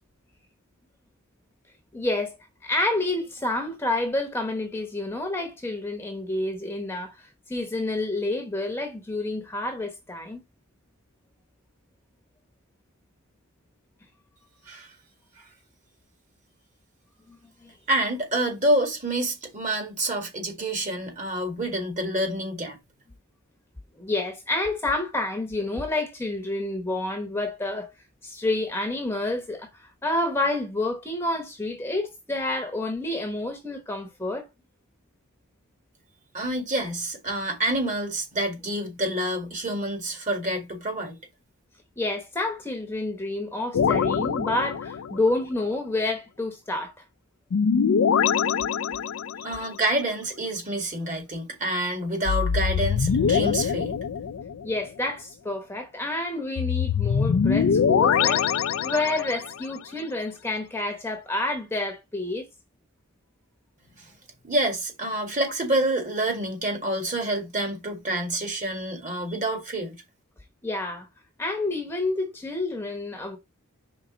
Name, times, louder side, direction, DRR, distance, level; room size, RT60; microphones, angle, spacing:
voice 1, 1.9-10.4 17.3-17.4 17.6-17.7 24.0-27.9 28.2-34.5 42.0-47.0 54.6-62.5 70.6-71.1 71.4-73.4, left 2 dB, 10° left, 0.9 m, -29 dB
voice 2, 17.9-22.8 36.3-41.2 49.4-53.9 64.4-70.0, right 1 dB, 35° right, 1.9 m, -27 dB
sound 1, 43.7-45.3 47.5-49.6 52.3-54.8 56.6-59.5, left 6 dB, 75° left, 0.4 m, -23 dB
5.2 x 3.8 x 5.0 m
head